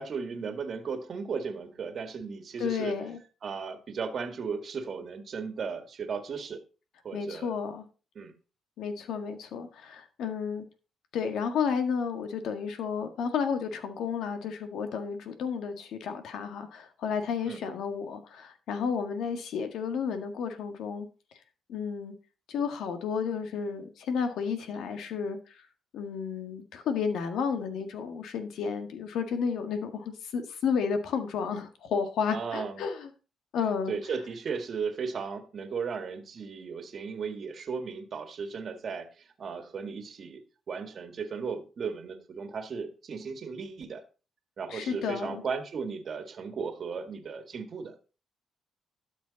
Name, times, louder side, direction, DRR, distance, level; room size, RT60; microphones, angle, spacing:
voice 1, 0.0-3.0 3.4-6.6 7.0-7.5 8.2-8.3 17.5-17.6 32.3-32.8 33.9-40.4 40.7-44.0 44.6-47.9, right 5 dB, 50° right, 1.7 m, -36 dB
voice 2, 2.6-3.2 7.1-7.8 8.8-10.6 11.1-21.1 21.7-22.1 22.5-25.4 25.9-33.1 33.5-33.9 44.7-45.4, left 6 dB, 75° left, 1.7 m, -32 dB
12.5 x 6.3 x 4.0 m
cardioid pair, 90°, 0 cm